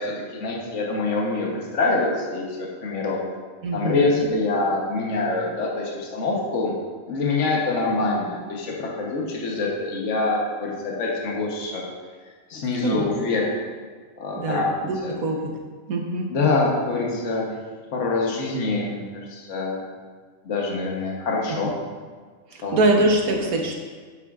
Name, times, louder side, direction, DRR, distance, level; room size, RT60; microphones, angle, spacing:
voice 1, 0.0-3.2 3.7-6.7 7.1-11.8 12.5-13.5 14.2-14.7 15.0-15.1 16.3-17.5 17.9-19.0 19.3-19.8 20.4-21.7 22.6-22.7 23.4-23.5, left 3 dB, 60° left, -2 dB, 1.4 m, -25 dB
voice 2, 3.6-4.3 12.8-13.1 14.3-15.5 15.9-16.3 21.5-21.6 22.5-23.8, right 2 dB, 80° right, 1 dB, 1.5 m, -23 dB
9.4 x 8.8 x 2.5 m, 1.5 s
omnidirectional pair, 1.5 m